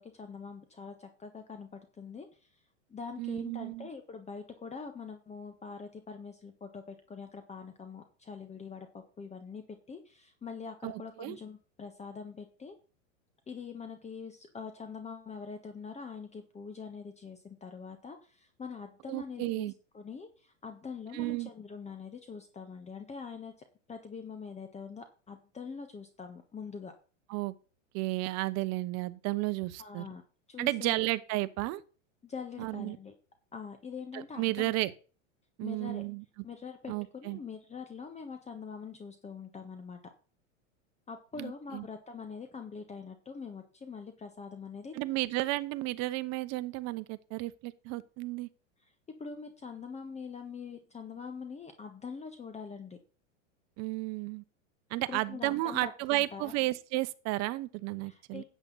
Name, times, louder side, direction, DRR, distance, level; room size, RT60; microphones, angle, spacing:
voice 1, 0.0-2.3 2.9-12.8 13.5-23.5 23.9-26.9 29.8-30.2 30.5-31.0 32.2-33.1 33.5-34.7 35.6-36.0 36.4-40.0 41.1-45.0 49.2-53.0 55.1-56.5 58.0-58.4, left 5 dB, 15° left, 1.5 m, -44 dB
voice 2, 3.2-3.9 10.8-11.4 19.1-19.7 21.1-21.5 27.3-27.5 27.9-30.0 30.6-31.8 32.6-33.0 34.1-34.9 35.6-36.2 36.9-37.4 41.4-41.9 44.9-48.5 53.8-54.4 54.9-58.4, right 19 dB, 45° right, 1.0 m, -33 dB
10.5 x 8.3 x 4.0 m
hypercardioid pair, 105°, 38 cm